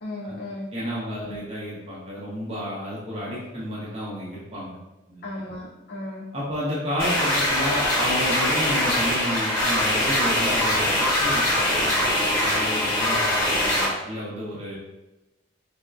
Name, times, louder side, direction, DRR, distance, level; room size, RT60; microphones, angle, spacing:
voice 1, 0.0-0.7 1.1-1.4 5.2-6.3, left 1 dB, 55° left, -5 dB, 0.4 m, -35 dB
voice 2, 0.7-4.8 5.1-5.4 6.3-14.7, equal, 30° right, -7 dB, 0.7 m, -31 dB
sound 1, 7.0-13.9, left 1 dB, 20° left, 1.0 m, -22 dB
3.6 x 2.0 x 2.3 m, 1.0 s
head